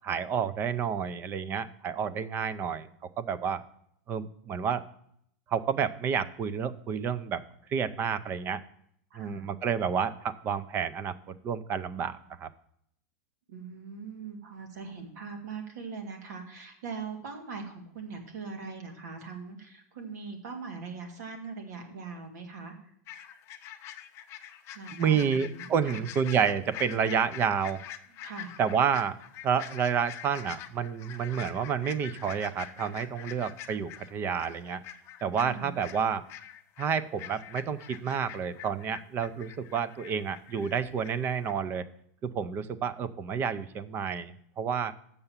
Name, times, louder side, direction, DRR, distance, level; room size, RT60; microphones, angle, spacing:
voice 1, 0.0-2.9 3.2-3.6 4.1-4.8 5.5-7.4 7.7-8.6 9.2-12.5 24.9-27.8 28.6-29.2 29.4-34.8 35.2-36.2 36.8-41.9 42.2-44.9, right 7 dB, 25° right, 16 dB, 0.5 m, -30 dB
voice 2, 9.1-9.5 13.5-22.7 24.7-26.1 28.2-28.6 35.4-35.8, right 5 dB, 80° right, 4 dB, 2.1 m, -41 dB
sound 1, 23.1-41.1 41.4-41.5, left 11 dB, 30° left, 0.6 m, -45 dB
6.9 x 6.8 x 7.1 m, 0.70 s
supercardioid pair, 155°, 9 cm